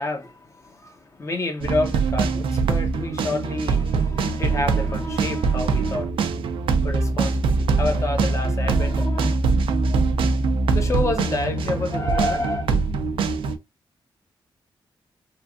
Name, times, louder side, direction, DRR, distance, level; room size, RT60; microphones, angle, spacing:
voice 1, 0.0-6.1 6.7-9.4 10.7-12.7, left 2 dB, 35° left, 0.8 m, -29 dB
sound 1, 1.6-13.6, right 4 dB, 90° right, 0.4 m, -23 dB
3.2 x 2.4 x 2.3 m
wide cardioid pair, 120°, 9 cm